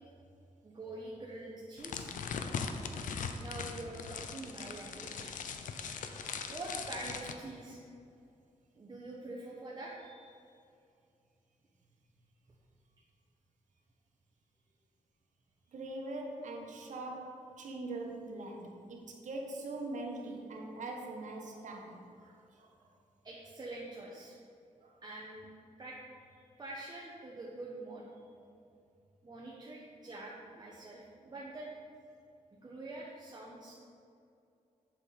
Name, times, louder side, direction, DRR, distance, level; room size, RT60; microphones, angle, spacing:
voice 1, 0.6-2.1 3.4-7.8 8.8-10.4 23.2-24.3 25.0-25.5 25.8-26.0 26.6-28.3 29.2-31.7 32.6-33.7, right 2 dB, 30° right, -4 dB, 1.0 m, -45 dB
sound 1, 1.8-7.3, left 6 dB, 90° left, 0.6 m, -40 dB
voice 2, 15.7-23.0 24.8-25.0 28.4-28.5, right 2 dB, 70° right, 1 dB, 1.3 m, -42 dB
8.0 x 6.7 x 4.2 m, 2.5 s
wide cardioid pair, 120°, 13 cm